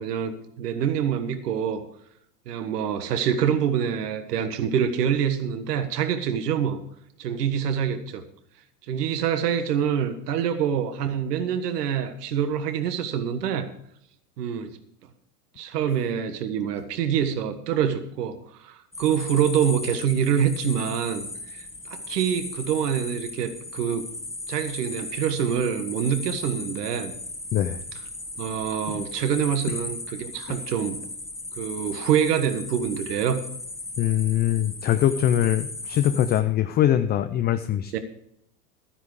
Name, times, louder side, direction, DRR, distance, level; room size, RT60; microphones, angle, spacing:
voice 1, 0.0-1.8 2.4-6.8 7.2-8.2 8.9-13.7 14.4-14.8 15.6-24.1 24.5-27.1 28.4-31.0 31.6-33.4 37.9-38.0, right 8 dB, 75° right, 9 dB, 1.5 m, -26 dB
sound 1, 18.9-36.4, left 2 dB, 5° left, 1.3 m, -37 dB
voice 2, 27.5-27.8 28.9-29.0 34.0-38.0, left 11 dB, 20° left, 9 dB, 0.4 m, -23 dB
12.5 x 9.8 x 4.8 m, 0.72 s
hypercardioid pair, 110°, 47 cm